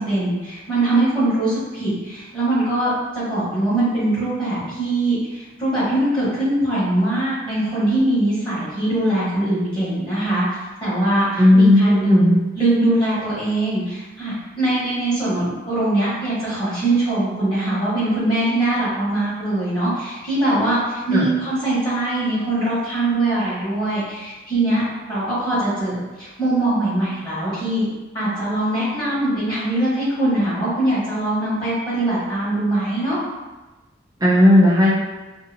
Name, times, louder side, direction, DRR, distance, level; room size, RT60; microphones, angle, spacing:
voice 1, 0.0-10.4 10.8-24.8 25.1-27.9 28.1-33.2, right 1 dB, 25° left, -11 dB, 1.1 m, -22 dB
voice 2, 11.4-12.4 21.1-21.3 34.2-34.9, left 1 dB, 20° right, -6 dB, 0.4 m, -14 dB
2.7 x 2.4 x 2.6 m, 1.2 s
head